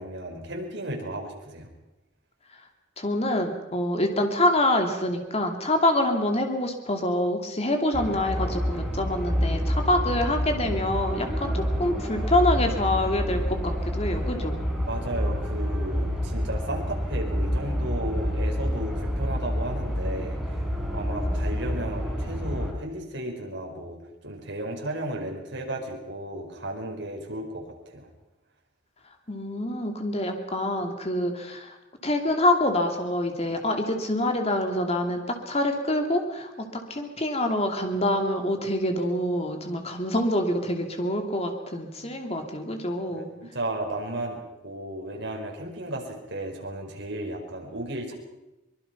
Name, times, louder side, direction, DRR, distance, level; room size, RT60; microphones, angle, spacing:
voice 1, 0.0-1.7 14.9-20.6 20.9-24.0 24.2-27.6 27.9-28.1 43.1-48.1, right 1 dB, 65° right, 1 dB, 4.7 m, -34 dB
voice 2, 3.0-14.6 29.3-31.7 32.0-43.3, left 1 dB, 30° left, 4 dB, 2.8 m, -26 dB
sound 1, 7.9-22.7, equal, ahead, 3.9 m, -28 dB
24.0 x 21.5 x 5.9 m, 0.98 s
head